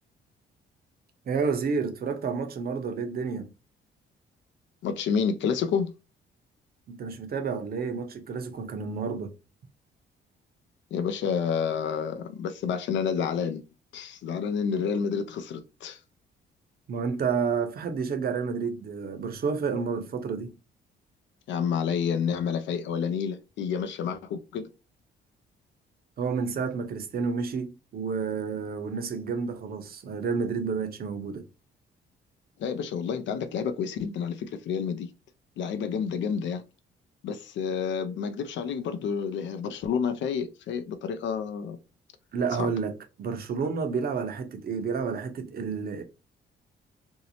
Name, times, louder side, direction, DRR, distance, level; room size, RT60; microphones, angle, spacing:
voice 1, 1.3-3.5 6.9-9.3 16.9-20.5 26.2-31.4 42.3-46.0, right 5 dB, 50° right, 0.6 m, -30 dB
voice 2, 4.8-5.9 10.9-13.6 13.9-16.0 21.5-24.7 32.6-35.1 35.6-36.6 37.2-41.8 42.6-42.7, left 7 dB, 70° left, 0.5 m, -29 dB
2.6 x 2.0 x 2.7 m
cardioid pair, 90°, 20 cm